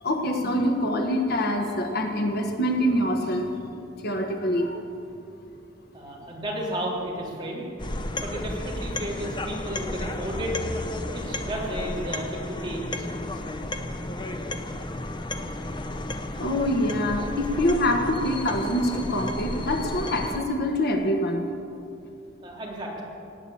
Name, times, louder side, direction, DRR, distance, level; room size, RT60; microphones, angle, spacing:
voice 1, 0.0-3.5 4.0-4.8 16.4-21.5, left 1 dB, 55° left, 3 dB, 1.5 m, -25 dB
voice 2, 5.9-10.6 11.1-13.4 22.4-23.0, equal, 25° right, -4 dB, 3.4 m, -33 dB
sound 1, 7.8-20.4, left 1 dB, 25° left, 0.8 m, -33 dB
18.5 x 9.1 x 8.6 m, 2.7 s
head